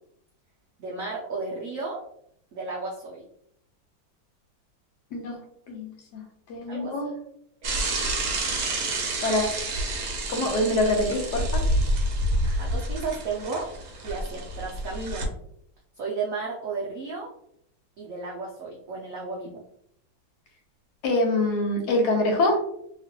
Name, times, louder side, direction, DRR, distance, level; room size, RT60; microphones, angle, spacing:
voice 1, 0.8-2.0 2.5-3.2 6.7-6.9 7.8-7.9 8.6-8.7 12.4-13.7 14.0-15.3 16.0-17.3 18.0-19.6, right 4 dB, 80° right, -3 dB, 0.7 m, -33 dB
voice 2, 5.7-6.2 6.5-7.1 9.2-9.5 10.3-11.6 21.0-22.6, left 1 dB, 65° left, 2 dB, 1.2 m, -25 dB
Bicycle / Mechanisms, 7.6-15.2, right 1 dB, 65° right, 1.0 m, -28 dB
3.0 x 3.0 x 2.8 m, 0.72 s
omnidirectional pair, 2.1 m